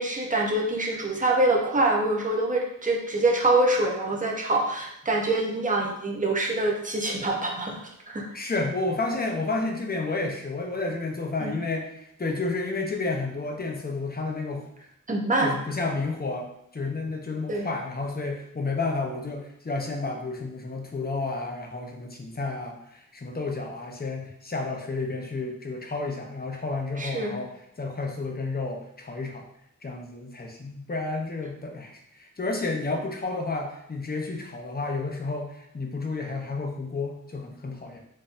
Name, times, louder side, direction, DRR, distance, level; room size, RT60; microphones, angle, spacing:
voice 1, 0.0-7.8 8.1-8.2 11.4-11.5 15.1-15.6 17.5-17.7 27.0-27.4, right 2 dB, 25° right, 0 dB, 0.7 m, -25 dB
voice 2, 8.3-14.7 15.4-29.4 29.8-38.0, left 3 dB, 30° left, 2 dB, 0.6 m, -31 dB
4.0 x 2.7 x 2.5 m, 0.75 s
wide cardioid pair, 70°, 33 cm